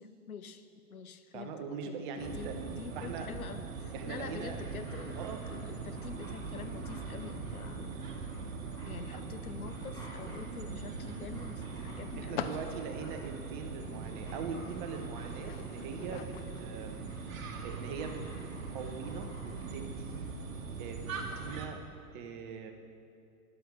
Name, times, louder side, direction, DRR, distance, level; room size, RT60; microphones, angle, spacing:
voice 1, 0.0-8.0 8.9-13.1, left 6 dB, 70° left, 10 dB, 0.8 m, -46 dB
voice 2, 1.3-2.6 2.9-3.3 3.9-4.6 5.1-5.4 7.2-7.3 9.1-9.2 12.2-17.0 17.6-20.3 20.8-21.8 22.1-22.7, right 5 dB, 35° right, 5 dB, 1.0 m, -42 dB
sound 1, 2.2-21.7, right 4 dB, 60° right, 1.3 m, -41 dB
Dog, 4.2-20.3 20.6-20.7, equal, 10° left, 2.7 m, -55 dB
sound 2, 9.6-21.1, left 8 dB, 45° left, 0.6 m, -49 dB
13.5 x 11.0 x 3.5 m, 2.4 s
figure-of-eight pair, 105°, 45 cm